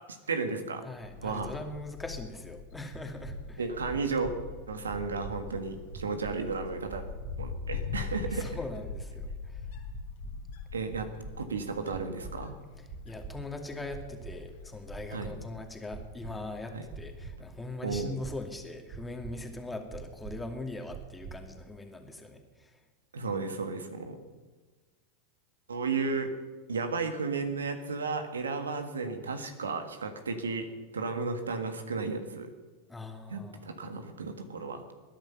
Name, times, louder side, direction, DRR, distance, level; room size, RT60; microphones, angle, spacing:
voice 1, 0.3-0.8 1.2-1.5 3.6-4.3 4.7-7.1 7.4-8.6 10.7-11.1 11.4-12.5 15.1-15.3 16.7-16.9 17.8-18.1 23.1-24.2 25.7-26.3 26.7-30.7 30.9-32.5 33.3-34.8, right 4 dB, 85° right, 8 dB, 1.7 m, -33 dB
voice 2, 0.8-3.7 8.3-9.7 13.0-22.8 32.9-33.7, left 2 dB, 10° left, 4 dB, 2.4 m, -41 dB
Wind, 1.0-17.3, left 6 dB, 65° left, 2.9 m, -43 dB
sound 1, 2.9-3.3 3.9-4.3 4.9-5.3 5.9-6.3 6.9-7.3 7.9-8.3 8.9-9.3 9.9-10.3 10.9-11.3 11.9-12.3 12.9-13.3 13.9-14.3 14.9-15.3 15.9-16.3 16.9-17.3 17.9-18.3 18.9-19.3 19.9-20.3 20.9-21.3, right 7 dB, 40° right, 3.2 m, -43 dB
20.0 x 10.5 x 5.8 m, 1.3 s
hypercardioid pair, 95°, 0 cm